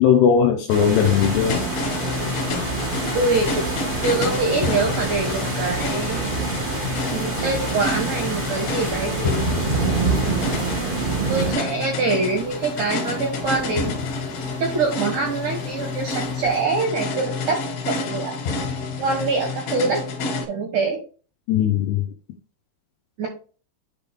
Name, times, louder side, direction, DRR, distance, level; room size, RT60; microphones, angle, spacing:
voice 1, 0.0-1.6 21.5-22.0, left 8 dB, 85° left, 2 dB, 2.3 m, -18 dB
sound 1, 0.7-11.5, right 3 dB, 55° right, 0.5 m, -26 dB
sound 2, 0.9-20.5, left 4 dB, 65° left, 2.8 m, -29 dB
voice 2, 3.1-3.7 4.0-6.6 7.0-9.5 11.3-14.0 14.6-18.4 19.0-20.0 20.5-21.0 23.2-23.3, right 3 dB, 80° right, 2 dB, 1.8 m, -24 dB
sound 3, 8.7-16.6, right 1 dB, 40° left, 0.8 m, -40 dB
10.5 x 3.6 x 3.7 m, 0.37 s
omnidirectional pair, 5.6 m